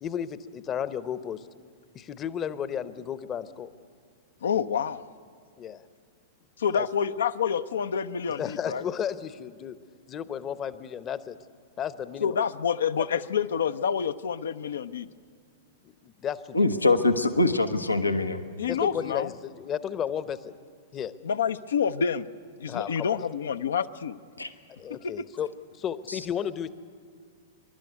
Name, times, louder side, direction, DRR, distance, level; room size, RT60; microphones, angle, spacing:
voice 1, 0.0-1.5 1.9-3.7 5.6-5.8 6.7-6.9 8.4-9.8 10.1-11.4 11.8-12.4 15.8-16.6 18.7-20.5 20.9-21.1 22.7-23.2 24.8-25.5 25.7-26.7, left 8 dB, 25° left, 14 dB, 0.8 m, -33 dB
voice 2, 4.4-5.0 6.6-8.8 12.2-15.1 18.6-19.3 21.2-22.3 22.6-24.2 24.9-25.1, left 7 dB, 70° left, 11 dB, 0.6 m, -28 dB
voice 3, 16.5-18.4 24.4-24.5, left 2 dB, 85° left, 9 dB, 1.0 m, -23 dB
26.5 x 12.0 x 9.6 m, 2.1 s
figure-of-eight pair, 100°, 0 cm